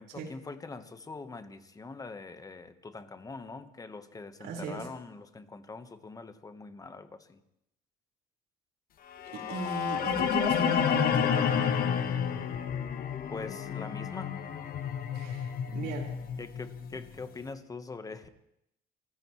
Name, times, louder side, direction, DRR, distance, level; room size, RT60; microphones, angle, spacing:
voice 1, 0.0-7.4 13.3-14.3 16.4-18.3, left 3 dB, 20° left, 10 dB, 1.2 m, -43 dB
voice 2, 4.4-4.8 9.3-11.7 15.1-16.1, right 4 dB, 75° right, 0 dB, 4.7 m, -37 dB
sound 1, 9.2-17.2, left 8 dB, 60° left, 1.3 m, -30 dB
28.5 x 14.5 x 3.2 m, 0.79 s
cardioid pair, 110°, 17 cm